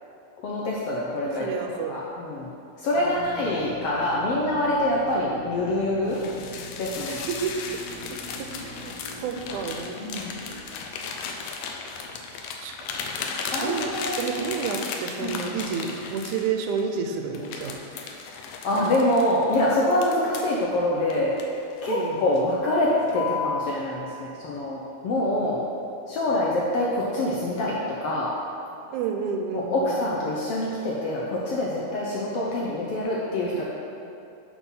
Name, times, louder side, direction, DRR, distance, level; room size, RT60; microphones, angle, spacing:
voice 1, 0.4-2.5 2.8-6.2 6.8-7.2 10.0-10.4 13.5-14.3 15.2-15.3 18.6-21.3 21.8-25.6 26.1-28.3 29.5-33.6, left 1 dB, 70° left, -5 dB, 1.4 m, -25 dB
voice 2, 1.4-2.0 3.0-3.5 7.1-7.7 8.1-9.0 9.2-10.0 12.6-12.7 13.6-13.9 14.2-18.1 21.9-22.2 28.9-30.1, right 6 dB, 80° right, 4 dB, 2.1 m, -30 dB
Drill, 2.9-11.5, left 1 dB, 10° right, 0.7 m, -44 dB
sound 1, 6.1-16.9 17.3-20.6 21.1-22.0 22.4-22.6 23.1-23.7, left 5 dB, 85° left, 2.2 m, -35 dB
6.1 x 5.9 x 5.5 m, 2.6 s
omnidirectional pair, 3.5 m